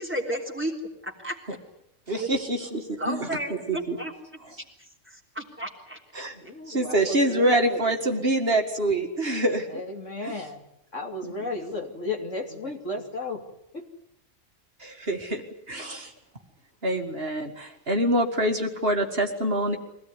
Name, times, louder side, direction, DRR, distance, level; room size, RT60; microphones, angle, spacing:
voice 1, 0.0-0.7 1.2-1.3 2.2-2.3 3.0-4.1 5.1-6.0, right 1 dB, 10° right, 2 dB, 3.5 m, -32 dB
voice 2, 2.1-2.8 3.1-4.0 6.1-6.4 6.7-9.8 10.2-10.3 11.2-11.3 14.8-15.4 15.7-16.1 16.8-19.8, right 1 dB, 50° right, 4 dB, 2.3 m, -25 dB
voice 3, 6.4-7.8 9.7-10.6 10.9-13.4 13.7-13.9, left 2 dB, 70° left, 3 dB, 3.3 m, -34 dB
24.0 x 17.0 x 9.9 m, 0.81 s
omnidirectional pair, 1.3 m